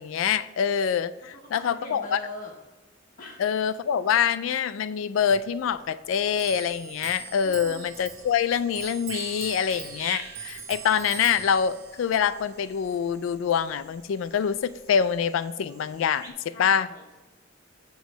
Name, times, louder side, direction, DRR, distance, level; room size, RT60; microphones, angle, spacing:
voice 1, 0.0-2.2 3.4-16.9, left 7 dB, 70° left, 14 dB, 0.3 m, -25 dB
voice 2, 1.2-2.5 3.2-3.4 7.4-7.8 16.5-17.2, left 2 dB, 45° left, -2 dB, 1.0 m, -42 dB
Clock, 5.2-15.1, right 9 dB, 70° right, 0.6 m, -43 dB
sound 1, 8.0-16.3, right 2 dB, 20° right, 1.0 m, -46 dB
8.1 x 3.1 x 6.1 m, 1.1 s
head